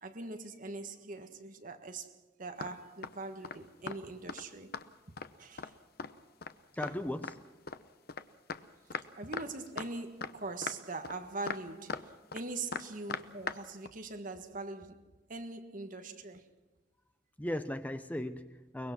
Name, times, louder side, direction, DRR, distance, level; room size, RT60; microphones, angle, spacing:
voice 1, 0.0-4.8 5.4-5.8 9.2-15.0 15.3-16.5, right 3 dB, 45° right, 1.6 m, -42 dB
sound 1, 2.6-2.7 3.0-3.1 3.4-3.6 3.9-4.0 4.3-4.4 4.7-5.3 5.6-5.7 6.0-6.1 6.4-6.5 6.8-6.9 7.2-8.2 8.5-8.6 8.9-9.1 9.3-9.9 10.2-10.3 10.6-10.8 11.0-11.2 11.5-12.0 12.3-12.4 12.7-13.6 13.9-14.0, left 5 dB, 55° left, 0.9 m, -39 dB
voice 2, 6.7-7.6 17.4-18.9, left 1 dB, 10° left, 0.6 m, -37 dB
23.5 x 21.0 x 6.1 m
head